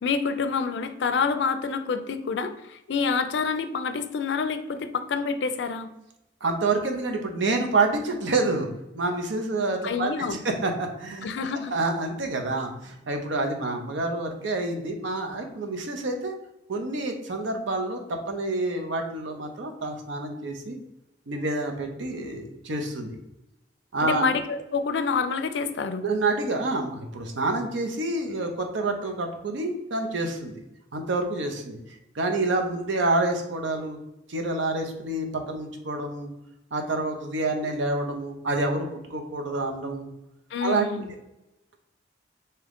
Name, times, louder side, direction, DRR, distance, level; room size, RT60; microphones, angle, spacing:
voice 1, 0.0-5.9 9.8-10.4 11.2-11.7 24.0-26.0 40.5-41.1, left 5 dB, 70° left, 9 dB, 0.4 m, -27 dB
voice 2, 6.4-8.7 8.9-11.3 11.7-16.3 16.7-20.8 21.3-23.1 23.9-24.2 26.0-30.6 30.9-31.8 32.1-34.0 34.3-36.3 36.7-40.1 40.6-40.9, right 2 dB, 80° right, 4 dB, 0.6 m, -28 dB
3.6 x 2.8 x 3.5 m, 0.89 s
head